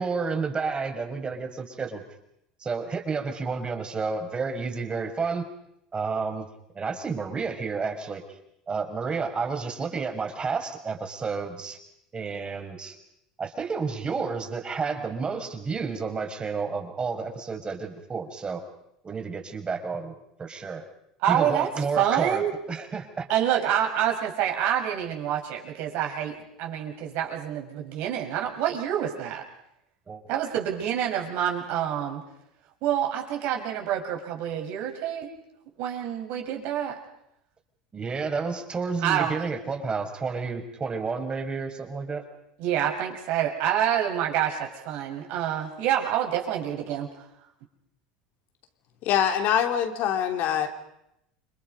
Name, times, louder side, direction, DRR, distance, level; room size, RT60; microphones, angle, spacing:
voice 1, 0.0-2.0 2.6-5.5 5.9-6.5 6.7-8.2 8.7-11.8 12.1-13.0 13.4-18.6 19.0-20.8 21.3-22.4 22.7-23.3 30.1-30.2 37.9-42.2, right 4 dB, 25° right, 5 dB, 5.5 m, -30 dB
voice 2, 21.2-21.7 22.0-22.5 23.3-29.4 30.3-32.2 32.8-35.3 35.8-37.0 39.0-39.4 42.6-47.1, right 10 dB, 60° right, 2 dB, 6.5 m, -27 dB
voice 3, 49.0-50.7, left 9 dB, 55° left, 5 dB, 3.4 m, -24 dB
30.0 x 26.0 x 5.4 m, 0.80 s
hypercardioid pair, 75°, 4 cm